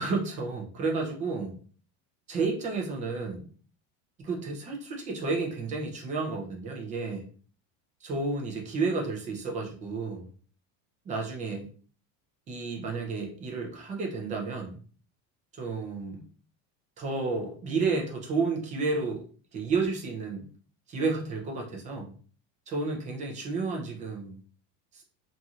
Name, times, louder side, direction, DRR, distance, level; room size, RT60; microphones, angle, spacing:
voice 1, 0.0-1.6 2.3-3.5 4.2-7.3 8.0-10.2 11.1-11.7 12.5-14.8 15.5-16.2 17.0-19.2 19.5-20.5 20.9-22.1 22.7-24.4 24.9-25.0, right 4 dB, 20° right, 0 dB, 0.5 m, -31 dB
2.9 x 2.6 x 2.4 m, 0.43 s
cardioid pair, 165°, 38 cm